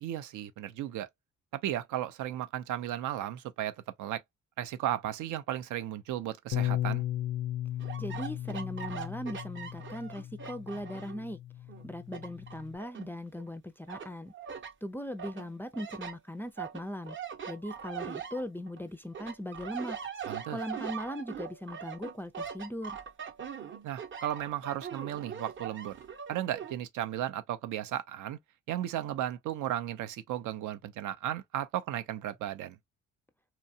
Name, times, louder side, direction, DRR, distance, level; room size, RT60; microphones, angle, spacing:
voice 1, 0.0-1.1 1.5-4.2 4.6-7.0 20.3-20.6 23.8-25.9 26.3-28.4 28.7-32.8, right 12 dB, 75° right, 0.5 m, -35 dB
Bass guitar, 6.5-12.8, left 13 dB, 85° left, 0.5 m, -36 dB
sound 1, 7.8-11.3 11.7-13.5 13.9-14.7 15.2-18.8 19.1-26.7, right 7 dB, 40° right, 0.7 m, -42 dB
voice 2, 8.0-11.4 11.8-14.3 14.8-17.2 17.5-20.0 20.5-23.0, equal, 5° left, 0.4 m, -39 dB
2.8 x 2.2 x 2.6 m
cardioid pair, 90°, 30 cm